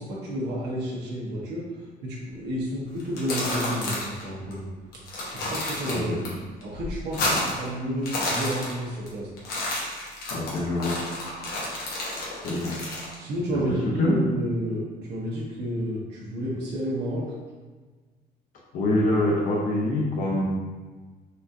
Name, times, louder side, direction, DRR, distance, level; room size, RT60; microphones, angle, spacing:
voice 1, 0.0-1.6 2.0-4.7 5.3-9.3 13.2-17.3, equal, 85° right, -6 dB, 1.0 m, -31 dB
sound 1, 3.0-4.2 4.5-4.6 4.9-6.3 6.6-7.7 7.9-9.1 9.4-13.1, left 1 dB, 70° left, 1.0 m, -30 dB
voice 2, 5.9-6.2 7.3-7.4 10.3-11.1 12.4-12.9 13.5-14.3 18.7-20.4, left 1 dB, 55° left, -3 dB, 0.6 m, -25 dB
4.1 x 2.5 x 2.6 m, 1.4 s
cardioid pair, 175°, 17 cm